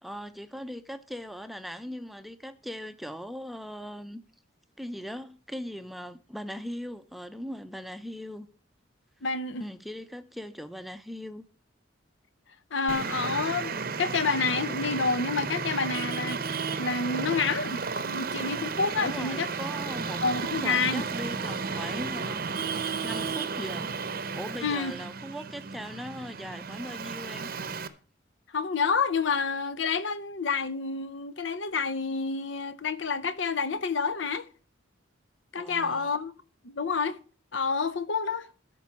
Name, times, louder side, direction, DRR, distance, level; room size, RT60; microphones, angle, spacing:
voice 1, 0.0-4.2 4.8-8.5 9.6-11.4 19.0-22.5 23.0-23.9 24.3-27.5 35.6-36.1, equal, ahead, 0.6 m, -39 dB
voice 2, 9.2-9.6 12.7-16.5 16.8-19.5 20.2-21.0 24.6-24.9 28.5-34.5 35.5-36.3 36.6-37.2 37.5-38.5, left 4 dB, 70° left, 0.8 m, -29 dB
Traffic noise roadway noise, 12.9-27.9, right 5 dB, 50° right, 0.7 m, -33 dB
13.0 x 5.3 x 5.8 m
head